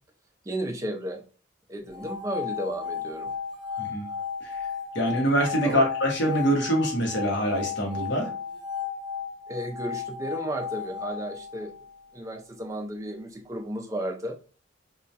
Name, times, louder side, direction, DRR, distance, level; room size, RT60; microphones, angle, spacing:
voice 1, 0.4-1.2 1.7-3.3 3.7-3.8 5.6-5.8 9.5-11.7 12.1-14.3, right 1 dB, 15° right, 3 dB, 0.3 m, -33 dB
sound 1, 1.9-12.0, left 6 dB, 5° left, 0.7 m, -34 dB
voice 2, 4.9-8.3, equal, 65° left, 0 dB, 0.8 m, -25 dB
2.2 x 2.1 x 2.7 m, 0.36 s
head